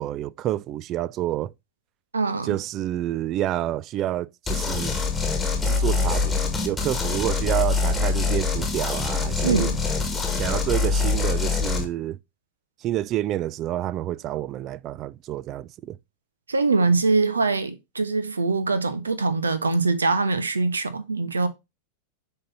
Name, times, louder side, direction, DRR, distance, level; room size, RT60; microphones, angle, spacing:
voice 1, 0.0-1.5 2.4-5.0 5.6-6.3 6.6-9.7 10.3-12.2 12.8-16.0, right 13 dB, 35° right, 0.3 m, -28 dB
voice 2, 2.1-2.6 9.4-9.8 16.5-21.5, right 3 dB, 75° right, 0.8 m, -23 dB
sound 1, 4.5-11.9, left 4 dB, 5° left, 1.7 m, -24 dB
6.6 x 3.9 x 4.0 m
figure-of-eight pair, 90°, 0 cm